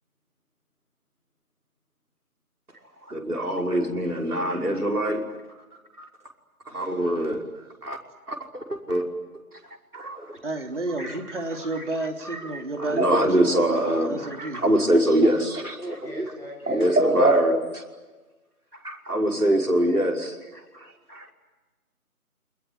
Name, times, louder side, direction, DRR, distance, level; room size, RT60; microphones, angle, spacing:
voice 1, 3.1-5.2 6.7-7.4 7.8-8.0 8.3-9.0 9.9-10.4 11.0-11.1 12.5-16.3 16.7-17.8 18.8-20.4 20.7-21.3, right 1 dB, 80° right, 2 dB, 5.6 m, -23 dB
voice 2, 6.6-7.3 10.1-10.2 15.8-17.2, equal, ahead, -15 dB, 1.4 m, -43 dB
voice 3, 10.4-14.8, right 2 dB, 50° right, 4 dB, 3.2 m, -32 dB
28.0 x 21.0 x 9.8 m, 1.2 s
figure-of-eight pair, 165°, 45 cm